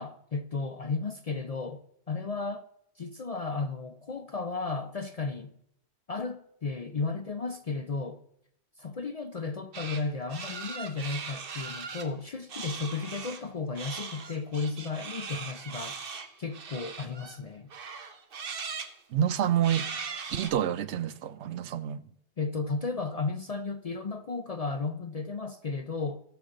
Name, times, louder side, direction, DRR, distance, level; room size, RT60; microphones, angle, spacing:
voice 1, 0.0-2.7 3.0-5.5 6.1-8.2 8.8-16.0 16.4-17.7 22.4-26.2, left 4 dB, 45° left, 0.5 m, -34 dB
sound 1, 9.7-10.0 10.3-12.1 12.5-13.4 13.8-17.4 17.7-18.9 19.6-20.5, right 5 dB, 55° right, 1.1 m, -39 dB
voice 2, 19.1-19.9 20.3-22.0, right 10 dB, 75° right, 0.9 m, -28 dB
18.0 x 6.7 x 3.8 m
omnidirectional pair, 1.2 m